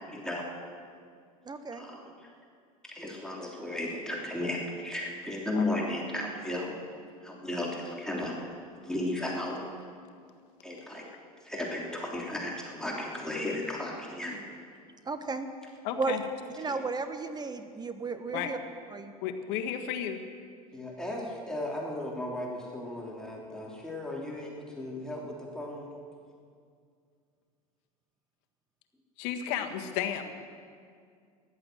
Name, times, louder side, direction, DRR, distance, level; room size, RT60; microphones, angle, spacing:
voice 1, 0.1-0.5 1.8-2.3 2.9-6.7 7.2-8.4 8.8-9.6 10.6-11.1 11.4-14.4 16.6-16.8 20.7-25.9, left 1 dB, 5° left, -3 dB, 3.1 m, -35 dB
voice 2, 1.4-1.9 15.0-15.5 16.0-16.2 16.6-18.6 18.9-19.1, right 4 dB, 20° right, 8 dB, 1.3 m, -34 dB
voice 3, 15.8-16.2 18.3-18.5 19.2-20.2 29.2-30.2, left 9 dB, 60° left, 6 dB, 1.7 m, -33 dB
14.5 x 11.5 x 7.7 m, 2.2 s
hypercardioid pair, 85°, 20 cm